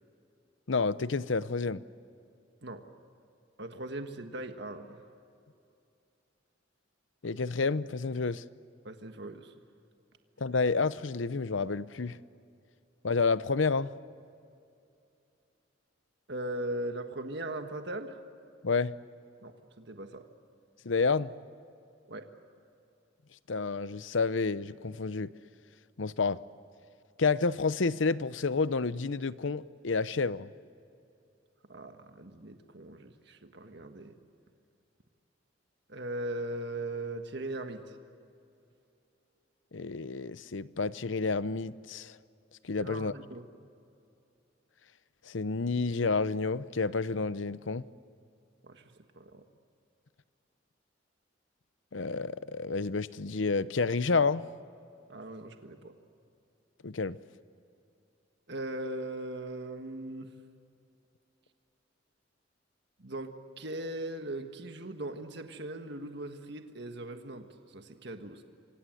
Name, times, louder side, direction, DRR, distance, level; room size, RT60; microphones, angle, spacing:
voice 1, 0.7-1.8 7.2-8.4 10.4-12.2 13.0-13.9 18.6-19.0 20.8-21.3 23.5-25.3 26.0-26.4 27.2-30.5 39.7-42.2 42.6-43.1 45.3-47.8 51.9-54.5 56.8-57.2, left 4 dB, 75° left, 0.7 m, -29 dB
voice 2, 3.6-5.0 8.8-9.5 16.3-18.2 19.4-20.3 22.1-22.3 31.7-34.1 35.9-37.9 42.8-43.4 48.6-49.4 55.1-55.9 58.5-60.3 63.0-68.4, right 1 dB, 60° right, 1.6 m, -39 dB
28.5 x 24.5 x 7.8 m
head